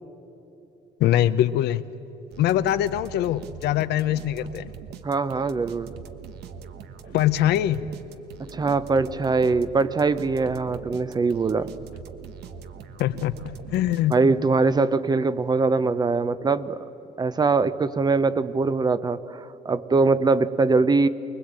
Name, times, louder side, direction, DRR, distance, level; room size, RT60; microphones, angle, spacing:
voice 1, 1.0-1.8 2.4-4.7 7.1-7.8 13.0-14.2, left 12 dB, 75° left, 13 dB, 0.7 m, -23 dB
sound 1, 2.3-14.5, right 7 dB, 75° right, 1.3 m, -42 dB
voice 2, 5.0-5.9 8.5-11.7 14.1-16.8 17.2-21.1, right 4 dB, 25° right, 14 dB, 0.7 m, -22 dB
24.0 x 20.5 x 8.9 m, 2.9 s
cardioid pair, 110°, 17 cm